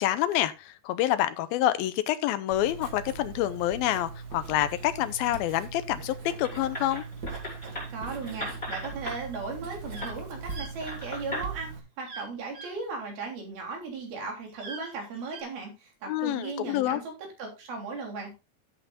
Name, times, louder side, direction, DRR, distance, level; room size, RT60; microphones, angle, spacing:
voice 1, 0.0-7.0 16.1-17.0, left 13 dB, 80° left, 2.5 m, -27 dB
Writing, 2.5-11.8, right 4 dB, 35° right, 1.7 m, -40 dB
sound 1, 6.4-9.2 10.0-10.1 10.8-11.5, left 1 dB, 15° left, 6.0 m, -37 dB
voice 2, 7.9-18.3, right 4 dB, 75° right, 5.2 m, -37 dB
sound 2, 9.9-10.1 10.5-10.7 12.0-12.3 12.5-12.7 14.5-15.4, right 3 dB, 55° right, 6.5 m, -42 dB
15.5 x 8.3 x 2.5 m
omnidirectional pair, 4.4 m